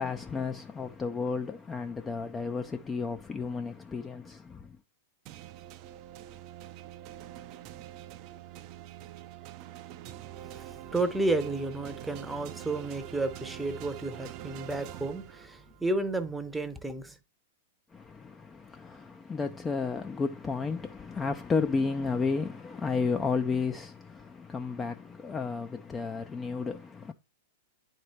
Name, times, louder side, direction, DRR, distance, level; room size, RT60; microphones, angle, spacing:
voice 1, 0.0-4.8 17.9-27.1, left 4 dB, 15° left, 0.4 m, -32 dB
sound 1, 5.3-15.9, right 12 dB, 40° right, 0.5 m, -45 dB
voice 2, 10.4-17.2, right 2 dB, 5° right, 0.8 m, -32 dB
10.0 x 4.4 x 3.2 m
figure-of-eight pair, 100°, 0 cm